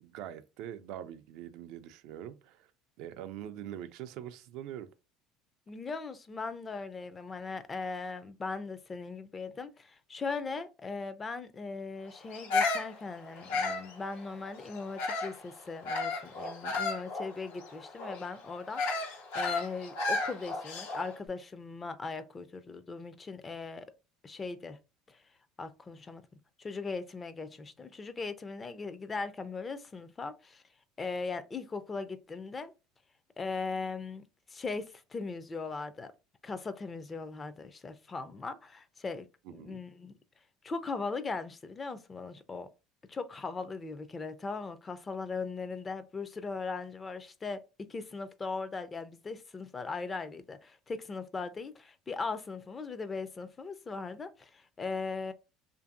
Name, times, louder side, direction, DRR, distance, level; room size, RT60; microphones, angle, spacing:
voice 1, 0.0-2.7 3.0-4.9 39.4-39.8, right 11 dB, 70° right, 0.3 m, -43 dB
voice 2, 5.7-23.9 24.2-24.8 25.1-25.2 25.6-26.2 26.6-30.6 31.0-32.7 33.4-34.2 34.5-36.1 36.4-39.3 39.5-40.2 40.6-42.7 43.1-47.6 47.9-55.3, left 4 dB, 25° left, 0.4 m, -39 dB
Bird vocalization bird call bird song, 12.3-15.4 15.8-21.1, left 3 dB, 85° left, 0.6 m, -33 dB
2.6 x 2.5 x 2.5 m
supercardioid pair, 105°, 0 cm